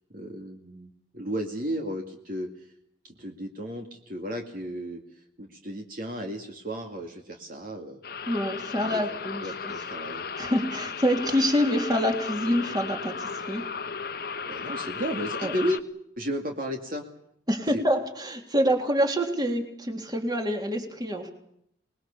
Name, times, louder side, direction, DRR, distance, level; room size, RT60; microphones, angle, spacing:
voice 1, 0.1-2.5 3.0-5.0 5.4-8.0 8.7-10.3 14.5-15.8 16.2-17.0, equal, 50° right, 3 dB, 2.4 m, -34 dB
sound 1, 8.0-15.8, left 5 dB, 50° left, 1.2 m, -35 dB
voice 2, 8.3-9.8 10.4-13.7 15.4-15.6 17.5-21.3, equal, 20° right, 4 dB, 3.4 m, -26 dB
26.0 x 20.5 x 7.2 m, 0.72 s
head